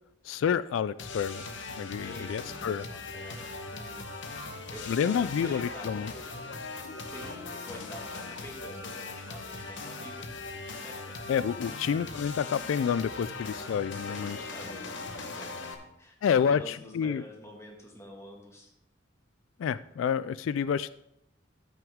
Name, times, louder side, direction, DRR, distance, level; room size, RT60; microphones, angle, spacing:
voice 1, 0.2-1.4 1.8-2.8 4.9-6.1 11.3-14.4 16.2-17.2 19.6-20.9, left 7 dB, 90° left, 16 dB, 0.3 m, -29 dB
sound 1, 1.0-15.7, left 3 dB, 70° left, 1.0 m, -40 dB
voice 2, 2.0-6.3 7.1-11.2 11.5-11.7 13.9-16.1 16.5-18.7, left 1 dB, 15° left, 0 dB, 1.7 m, -48 dB
14.0 x 6.1 x 3.6 m, 0.79 s
head